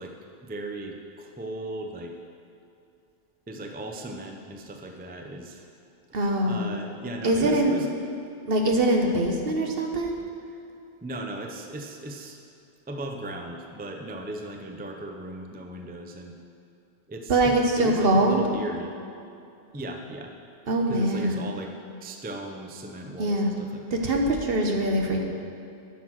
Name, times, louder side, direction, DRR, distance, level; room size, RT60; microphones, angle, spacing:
voice 1, 0.0-2.2 3.5-5.7 6.5-7.9 11.0-12.4 12.9-16.3 17.1-18.9 19.7-20.3 20.9-21.7 22.0-24.0, right 1 dB, 10° right, 3 dB, 0.4 m, -37 dB
voice 2, 6.1-6.7 7.2-7.8 8.5-10.1 17.3-18.4 20.7-21.5 23.2-23.5 23.9-25.3, right 1 dB, 55° right, 2 dB, 1.2 m, -23 dB
9.9 x 6.0 x 6.2 m, 2.6 s
omnidirectional pair, 1.2 m